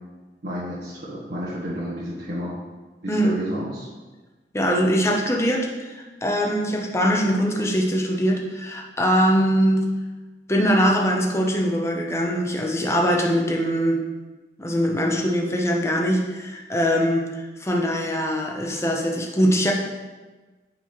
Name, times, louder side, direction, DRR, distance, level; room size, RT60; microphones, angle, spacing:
voice 1, 0.4-2.5 3.0-3.9, equal, 80° right, -9 dB, 1.4 m, -31 dB
voice 2, 3.1-3.4 4.5-9.8 10.5-14.0 14.6-19.7, equal, 15° left, 0 dB, 0.8 m, -22 dB
9.3 x 4.1 x 3.2 m, 1.2 s
head